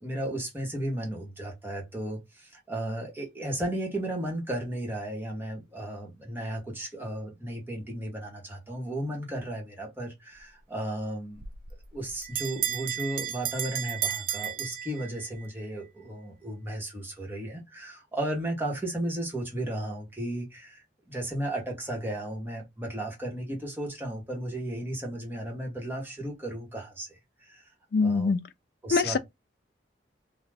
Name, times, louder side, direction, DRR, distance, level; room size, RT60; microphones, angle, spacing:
voice 1, 0.0-11.4 11.9-27.6 28.0-28.3 28.8-29.2, right 1 dB, 10° right, 0.9 m, -34 dB
Bell, 11.4-15.5, right 10 dB, 50° right, 0.3 m, -33 dB
voice 2, 27.9-28.4 28.9-29.2, left 4 dB, 55° left, 0.3 m, -23 dB
2.3 x 2.0 x 3.2 m
head